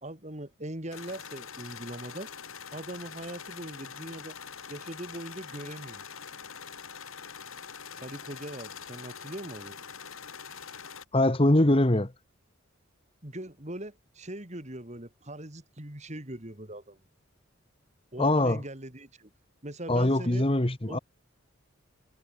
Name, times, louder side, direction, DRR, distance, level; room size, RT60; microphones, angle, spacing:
voice 1, 0.0-2.3 2.7-4.4 4.7-6.0 7.9-9.8 13.2-17.0 18.1-19.3 19.6-20.4 20.9-21.0, right 1 dB, 35° right, 2.9 m, -41 dB
sound 1, 0.9-11.0, left 6 dB, 80° left, 3.1 m, -44 dB
voice 2, 11.1-12.1 18.2-18.6 19.9-21.0, left 1 dB, 25° left, 1.3 m, -23 dB
head